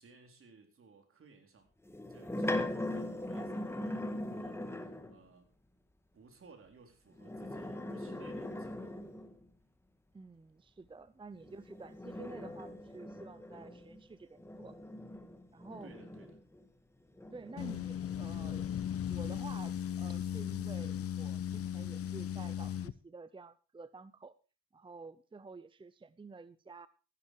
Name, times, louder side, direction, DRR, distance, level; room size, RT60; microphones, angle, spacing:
voice 1, 0.0-1.7 2.1-4.6 5.1-5.5 6.1-8.9 15.8-16.4, right 4 dB, 45° right, 5 dB, 4.1 m, -58 dB
sound 1, 1.9-5.2 7.1-9.5 11.4-16.6 17.2-18.9, left 1 dB, 10° left, 1.8 m, -41 dB
voice 2, 10.1-14.8 15.5-16.0 17.3-18.7 19.1-24.4 24.7-26.9, right 4 dB, 15° right, 15 dB, 0.7 m, -50 dB
sound 2, 17.6-22.9, left 9 dB, 50° left, 0.9 m, -37 dB
14.5 x 11.0 x 4.8 m, 0.34 s
cardioid pair, 90°, 30 cm